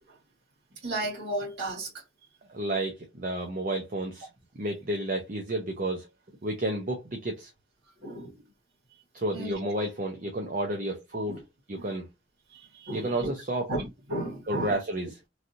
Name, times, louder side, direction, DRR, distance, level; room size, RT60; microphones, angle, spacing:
voice 1, 0.8-1.9 8.0-8.4 9.3-9.7 11.1-11.4 11.8-11.9 12.5-13.3 13.7-14.7, right 1 dB, 60° right, 1.7 m, -34 dB
voice 2, 2.5-4.3 4.6-6.1 6.4-7.5 9.1-11.4 11.7-12.1 12.9-13.7 14.5-15.2, right 1 dB, 45° right, 0.6 m, -31 dB
3.2 x 2.6 x 2.6 m
head